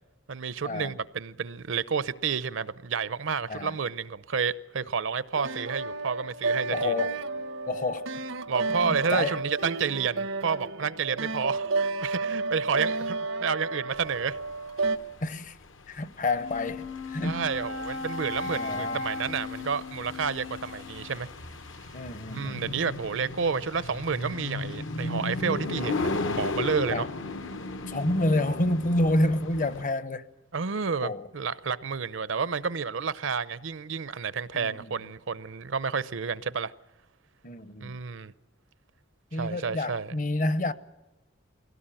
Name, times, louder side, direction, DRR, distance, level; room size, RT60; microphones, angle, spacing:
voice 1, 0.3-6.9 8.5-14.4 17.2-21.3 22.3-27.1 30.5-36.7 37.8-38.3 39.3-40.1, right 5 dB, 70° right, 0.7 m, -30 dB
sound 1, 5.3-15.0, right 3 dB, 90° right, 1.0 m, -31 dB
voice 2, 6.7-7.2 7.7-8.1 8.8-9.4 15.2-15.6 15.9-17.5 18.5-19.0 21.9-22.6 26.9-27.1 27.9-30.3 31.0-31.3 34.5-35.0 37.4-38.0 39.3-40.7, left 1 dB, 40° left, 0.8 m, -29 dB
sound 2, 14.0-29.8, left 2 dB, 70° left, 1.1 m, -36 dB
Wind instrument woodwind instrument, 16.3-21.2, left 3 dB, 90° left, 1.5 m, -36 dB
22.0 x 17.0 x 9.0 m
head